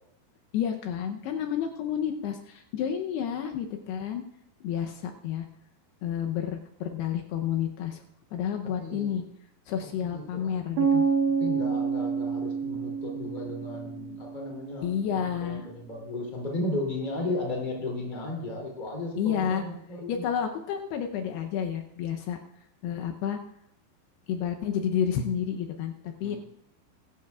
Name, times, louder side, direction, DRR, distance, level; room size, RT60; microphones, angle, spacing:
voice 1, 0.5-4.2 4.6-5.5 6.0-8.0 8.3-9.2 9.7-11.1 14.8-15.6 19.2-19.6 20.1-22.4 22.8-23.4 24.3-26.4, left 8 dB, 80° left, 4 dB, 2.7 m, -30 dB
voice 2, 8.8-9.2 10.1-10.5 11.4-14.9 15.3-20.2 26.2-26.4, left 1 dB, 15° left, -1 dB, 2.2 m, -34 dB
sound 1, 10.8-14.7, right 5 dB, 85° right, 3.3 m, -28 dB
21.5 x 12.5 x 2.4 m, 0.76 s
omnidirectional pair, 4.9 m